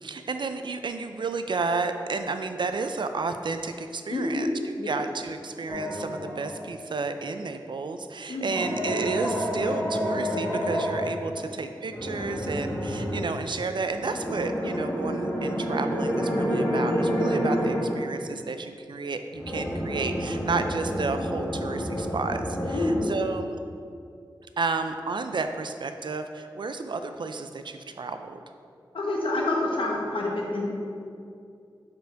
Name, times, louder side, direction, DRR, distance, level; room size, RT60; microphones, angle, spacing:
voice 1, 0.0-23.6 24.6-28.4, right 4 dB, 65° right, 8 dB, 0.4 m, -31 dB
voice 2, 4.1-4.5 4.8-5.0 8.3-8.7 11.3-11.5 16.5-16.9 22.7-23.1 28.9-30.7, left 2 dB, 85° left, -2 dB, 1.0 m, -28 dB
sound 1, 5.7-6.6 8.4-11.0 11.9-13.2 13.9-18.0 19.3-23.0, equal, 25° left, 1.5 m, -29 dB
5.0 x 4.5 x 4.6 m, 2.4 s
wide cardioid pair, 65°, 9 cm